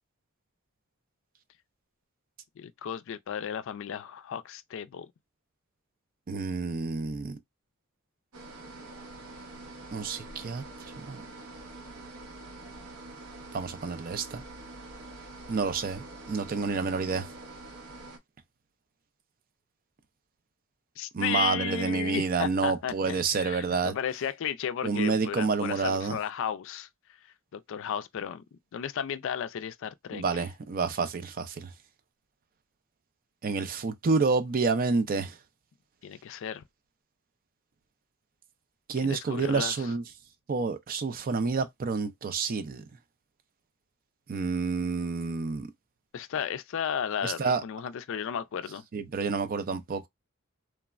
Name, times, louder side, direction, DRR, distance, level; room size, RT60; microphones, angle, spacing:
voice 1, 2.6-5.1 21.0-26.9 27.5-28.4 28.7-30.4 36.0-36.6 39.0-39.9 46.1-48.8, left 8 dB, 60° left, 0.3 m, -34 dB
voice 2, 6.3-7.4 9.9-10.6 11.0-11.2 13.5-14.4 15.5-17.3 21.1-23.9 24.8-26.2 30.1-31.7 33.4-35.4 38.9-40.0 40.5-42.8 44.3-45.7 47.2-47.6 48.9-50.1, right 4 dB, 45° right, 0.4 m, -29 dB
sound 1, 8.3-18.2, right 2 dB, 85° right, 0.8 m, -45 dB
3.2 x 2.0 x 2.3 m
head